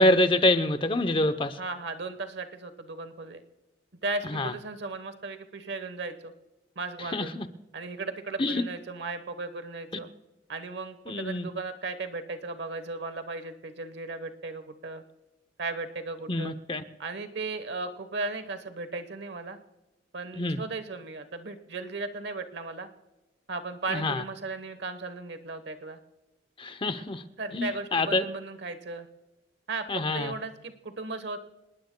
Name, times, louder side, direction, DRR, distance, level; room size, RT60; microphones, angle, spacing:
voice 1, 0.0-1.6 4.3-4.5 7.0-7.5 8.4-8.6 11.1-11.5 16.3-16.8 20.4-20.6 23.9-24.2 26.6-27.2 27.5-28.2 29.9-30.3, left 1 dB, 30° left, 11 dB, 0.7 m, -26 dB
voice 2, 1.6-3.4 4.0-6.3 6.8-7.3 7.7-10.1 10.5-15.0 15.6-16.5 17.0-19.6 20.1-22.9 23.5-26.0 27.4-29.1 29.7-29.9 30.1-31.4, right 3 dB, 65° right, 10 dB, 1.1 m, -36 dB
27.0 x 19.0 x 2.2 m, 1.0 s
head